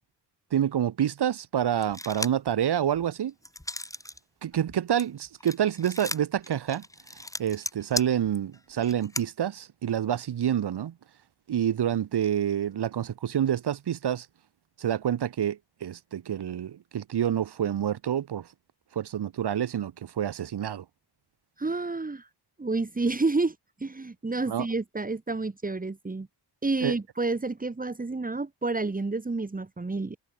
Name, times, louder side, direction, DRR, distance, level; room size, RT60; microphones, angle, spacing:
voice 1, 0.5-3.3 4.4-6.8 7.4-10.9 11.5-14.3 14.8-18.5 18.9-20.8 24.5-24.7 26.8-26.9, right 10 dB, 75° right, 4.5 m, -28 dB
sound 1, 1.8-2.5 2.9-4.2 4.5-9.2, left 1 dB, 10° left, 5.4 m, -36 dB
voice 2, 21.6-22.3 22.6-23.5 23.8-26.3 26.6-30.2, right 3 dB, 20° right, 3.1 m, -29 dB
cardioid pair, 110°, 40 cm